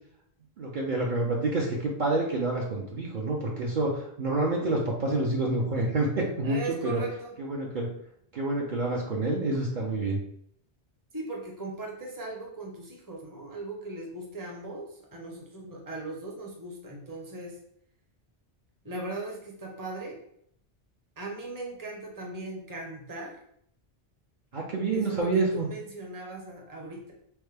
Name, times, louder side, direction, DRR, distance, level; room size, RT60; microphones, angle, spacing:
voice 1, 0.6-7.0 7.4-7.9 8.3-10.2 24.5-25.7, right 2 dB, 55° right, -3 dB, 0.7 m, -28 dB
voice 2, 6.4-7.3 11.1-17.6 18.8-20.2 21.2-23.4 24.9-27.1, right 2 dB, 20° right, -1 dB, 0.7 m, -38 dB
4.7 x 2.1 x 3.3 m, 0.69 s
omnidirectional pair, 1.1 m